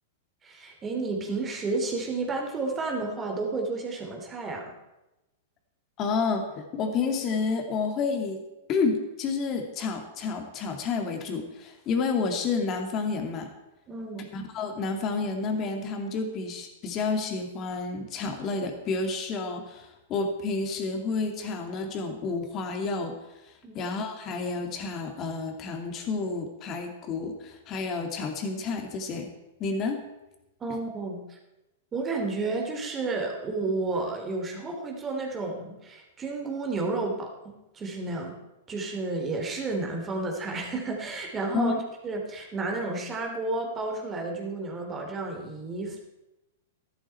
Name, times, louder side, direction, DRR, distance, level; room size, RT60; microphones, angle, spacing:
voice 1, 0.4-4.7 13.9-14.3 23.6-23.9 30.6-31.4 31.9-38.4 38.7-41.7 42.0-46.0, right 3 dB, 20° right, 2 dB, 3.1 m, -31 dB
voice 2, 6.0-8.4 8.7-13.5 14.3-23.1 23.7-29.3 29.6-30.0 41.5-41.7, left 4 dB, 35° left, 5 dB, 2.5 m, -30 dB
13.5 x 12.0 x 4.5 m, 0.97 s
hypercardioid pair, 110°, 0 cm